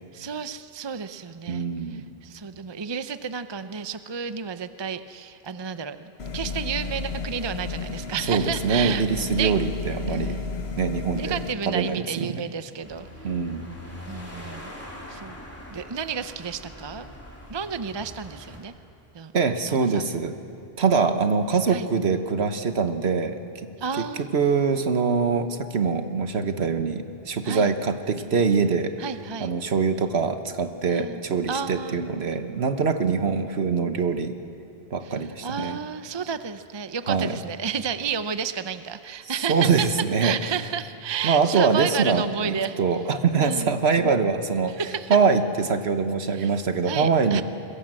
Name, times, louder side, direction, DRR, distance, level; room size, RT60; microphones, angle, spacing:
voice 1, 0.1-9.7 10.1-10.7 11.1-13.1 14.1-14.7 15.1-15.3 15.7-17.1 17.5-18.7 19.1-19.3 19.7-20.1 21.7-21.9 23.8-24.2 27.4-27.7 29.0-29.5 30.9-31.2 31.5-32.0 35.0-35.2 35.4-39.9 40.2-42.8 43.4-43.8 44.8-45.2 46.3-46.5 46.8-47.4, right 6 dB, 30° right, 11 dB, 0.6 m, -31 dB
voice 2, 1.5-2.1 8.3-10.4 10.8-11.4 11.7-12.4 13.2-13.7 19.3-20.3 20.8-23.4 24.0-24.1 24.3-28.9 29.4-34.4 34.9-35.8 37.1-37.4 39.2-40.3 41.2-44.8 45.1-47.4, right 5 dB, 90° right, 8 dB, 1.5 m, -23 dB
sound 1, 6.2-11.5, left 4 dB, 85° left, 1.6 m, -33 dB
sound 2, 12.8-18.6, left 1 dB, 15° left, 3.3 m, -42 dB
25.5 x 21.5 x 7.6 m, 2.7 s
omnidirectional pair, 1.0 m